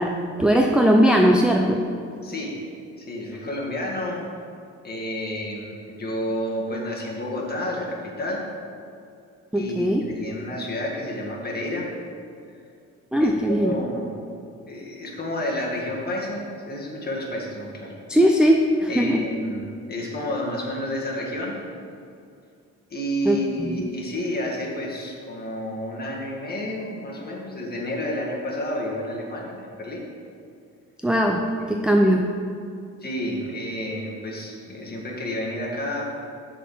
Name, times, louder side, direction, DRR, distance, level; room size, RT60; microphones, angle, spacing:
voice 1, 0.0-1.8 9.5-10.0 13.1-13.7 18.1-19.3 23.3-23.8 31.0-32.3, equal, 5° right, 2 dB, 0.4 m, -19 dB
voice 2, 2.2-2.6 3.0-4.2 4.8-8.5 9.5-11.9 13.2-14.1 14.7-17.9 18.9-21.6 22.9-30.1 33.0-36.0, left 1 dB, 30° left, -3 dB, 1.8 m, -30 dB
6.4 x 4.4 x 6.5 m, 2.4 s
cardioid pair, 90°, 30 cm